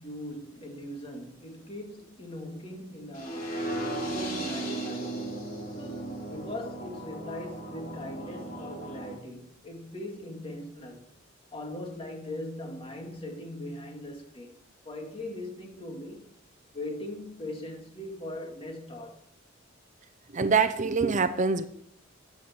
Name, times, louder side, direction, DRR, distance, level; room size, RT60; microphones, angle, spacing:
voice 1, 0.0-3.6 3.9-5.2 5.8-11.0 11.5-14.5 14.8-16.3 16.7-19.2, left 1 dB, 30° left, 2.2 m, -40 dB
sound 1, 3.1-9.1, right 1 dB, 45° left, 3.7 m, -36 dB
voice 2, 20.3-21.6, right 5 dB, 40° right, 0.6 m, -24 dB
12.5 x 8.6 x 4.4 m
head